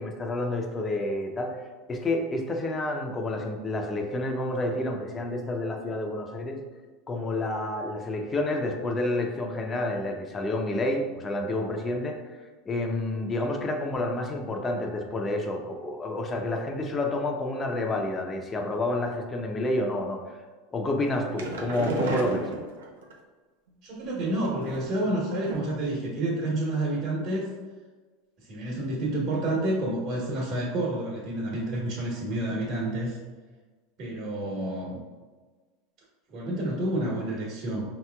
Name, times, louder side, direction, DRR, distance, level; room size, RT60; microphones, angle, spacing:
voice 1, 0.0-6.6 7.1-12.2 12.7-20.4 20.7-22.5, left 2 dB, 25° left, 3 dB, 0.6 m, -29 dB
sound 1, 21.0-23.1 24.1-25.0 25.5-25.9 26.2-26.3 26.6-26.7, right 3 dB, 90° right, 0.6 m, -33 dB
voice 2, 23.8-27.5 28.5-33.2 34.0-35.0 36.3-37.9, right 1 dB, 50° right, -4 dB, 1.2 m, -29 dB
5.5 x 2.9 x 2.3 m, 1.4 s
supercardioid pair, 110°, 0 cm